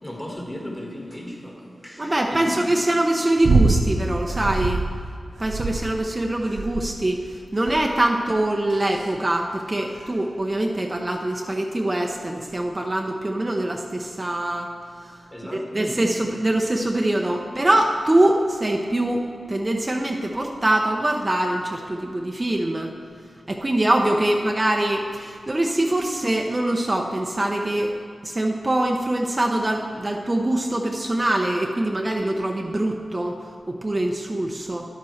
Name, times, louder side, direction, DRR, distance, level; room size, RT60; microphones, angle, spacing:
voice 1, 0.0-2.8 15.3-16.1, left 1 dB, 15° left, 0 dB, 1.5 m, -36 dB
voice 2, 2.0-4.8 5.4-7.2 7.5-14.7 15.7-22.9 23.5-27.9 28.2-33.3 33.7-34.8, right 1 dB, 30° right, 1 dB, 0.6 m, -23 dB
sound 1, 3.4-3.9 4.3-4.9 5.4-6.1 6.6-7.0 7.7-8.0 8.7-9.1 10.0-10.1, right 3 dB, 85° right, 0.5 m, -23 dB
10.0 x 8.5 x 3.2 m, 2.3 s
cardioid pair, 55°, 0 cm